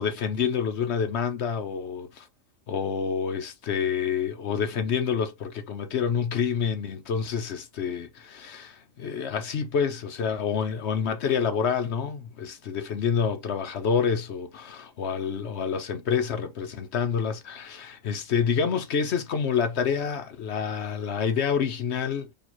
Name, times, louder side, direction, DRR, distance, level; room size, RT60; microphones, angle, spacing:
voice 1, 0.0-2.3 2.7-22.3, left 6 dB, 60° left, 0.9 m, -28 dB
4.4 x 2.9 x 3.0 m
omnidirectional pair, 1.4 m